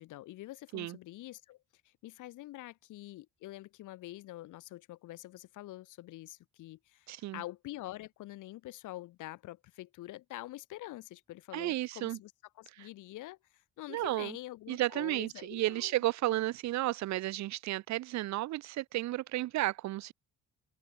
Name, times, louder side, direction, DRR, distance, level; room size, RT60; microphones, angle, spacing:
voice 1, 0.0-1.6 1.8-16.0, left 16 dB, 85° left, 1.1 m, -46 dB
voice 2, 7.1-7.4 11.5-12.2 12.8-12.9 13.9-14.4 14.7-20.1, right 16 dB, 65° right, 0.5 m, -33 dB
cardioid pair, 90°, 30 cm